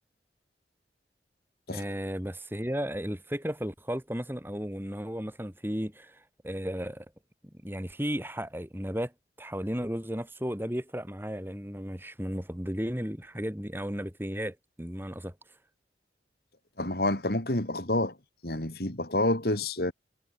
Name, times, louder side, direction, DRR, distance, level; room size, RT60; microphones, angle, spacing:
voice 1, 1.7-7.1 7.6-9.1 9.4-15.3, equal, 10° right, 3.2 m, -34 dB
voice 2, 16.8-18.1 18.4-19.9, left 1 dB, 55° left, 3.3 m, -28 dB
head